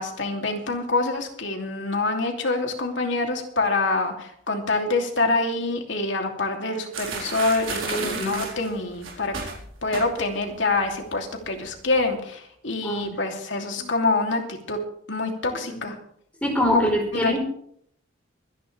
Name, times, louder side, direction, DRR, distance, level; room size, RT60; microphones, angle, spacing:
voice 1, 0.0-9.3 9.8-14.8 15.1-15.9 16.7-16.8 17.1-17.4, left 3 dB, 70° left, 2 dB, 2.9 m, -26 dB
sound 1, 6.9-10.5 10.7-11.1 11.4-12.0, right 4 dB, 85° right, 4.3 m, -33 dB
voice 2, 7.8-8.4 12.8-13.1 15.7-15.8 16.4-17.4, equal, 5° left, 0 dB, 4.7 m, -25 dB
24.0 x 11.0 x 3.4 m, 0.65 s
head